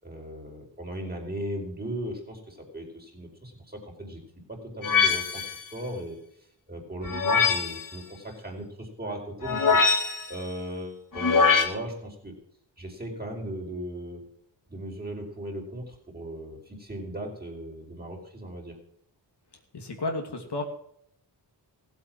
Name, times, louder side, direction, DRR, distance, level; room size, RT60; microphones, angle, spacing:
voice 1, 0.0-4.2 4.5-6.2 6.7-9.8 10.3-12.3 12.8-14.2 14.7-18.7, right 1 dB, 20° right, 0 dB, 4.7 m, -37 dB
sound 1, 4.8-5.6 7.0-7.8 9.4-10.4 11.2-11.7, left 5 dB, 45° left, 2.3 m, -22 dB
voice 2, 19.7-20.6, left 2 dB, 60° left, 2 dB, 2.7 m, -32 dB
15.5 x 8.2 x 6.2 m, 0.70 s
cardioid pair, 65°, 45 cm